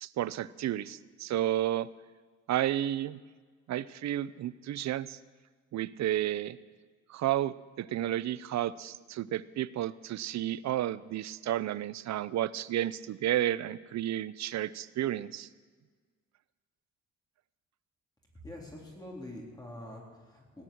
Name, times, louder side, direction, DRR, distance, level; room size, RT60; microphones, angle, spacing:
voice 1, 0.0-1.9 2.5-3.2 3.7-5.2 5.7-6.6 7.1-15.5, right 12 dB, 65° right, 19 dB, 0.6 m, -32 dB
voice 2, 18.4-20.6, left 1 dB, 15° left, -3 dB, 3.8 m, -45 dB
18.5 x 6.2 x 10.0 m, 1.5 s
cardioid pair, 90°, 30 cm